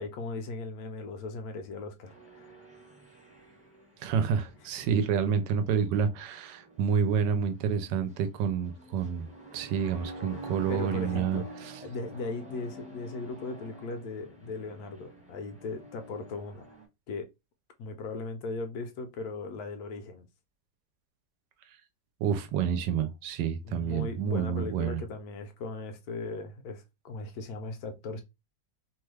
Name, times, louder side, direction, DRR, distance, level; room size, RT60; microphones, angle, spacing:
voice 1, 0.0-2.6 10.7-11.5 11.8-16.7 17.1-17.3 17.8-20.3 23.6-28.2, left 3 dB, 70° left, 1.0 m, -38 dB
sound 1, 2.0-16.9, right 2 dB, 5° right, 0.6 m, -48 dB
voice 2, 4.0-9.3 9.5-11.7 22.2-25.0, right 7 dB, 90° right, 1.2 m, -29 dB
3.0 x 2.3 x 3.2 m
omnidirectional pair, 1.8 m